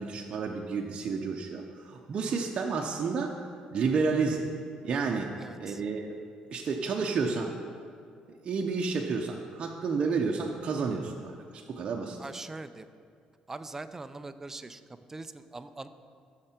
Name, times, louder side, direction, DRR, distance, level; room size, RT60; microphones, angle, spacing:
voice 1, 0.0-3.4 3.7-4.5 4.8-5.3 5.6-6.2 6.5-7.5 8.4-12.2, right 4 dB, 45° right, 0 dB, 0.7 m, -30 dB
voice 2, 5.4-5.8 12.2-12.9 13.5-15.9, right 3 dB, 15° right, 11 dB, 0.4 m, -42 dB
13.5 x 6.6 x 4.4 m, 2.3 s
cardioid pair, 130°, 2 cm